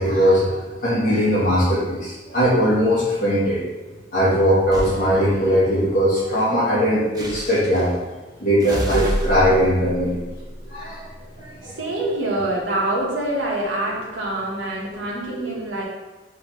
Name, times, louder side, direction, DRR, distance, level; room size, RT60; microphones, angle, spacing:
voice 1, 0.0-3.6 4.1-7.9 8.4-10.2 10.6-11.0 11.4-12.1, equal, 50° left, -10 dB, 1.2 m, -20 dB
sound 1, 4.7-5.0 7.2-7.9 8.6-11.2, equal, 20° right, 0.7 m, -29 dB
voice 2, 11.4-15.8, right 1 dB, 80° right, -4 dB, 1.2 m, -26 dB
5.4 x 3.1 x 3.0 m, 1.2 s
head